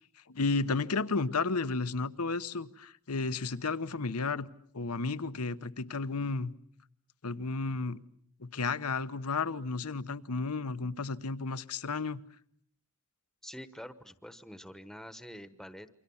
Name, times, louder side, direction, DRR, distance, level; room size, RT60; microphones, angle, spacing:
voice 1, 0.3-4.5 4.7-6.5 7.2-8.0 8.4-12.2, left 4 dB, 80° left, 13 dB, 1.0 m, -32 dB
voice 2, 13.4-15.9, equal, ahead, 11 dB, 1.1 m, -46 dB
28.5 x 24.5 x 7.1 m, 0.64 s
head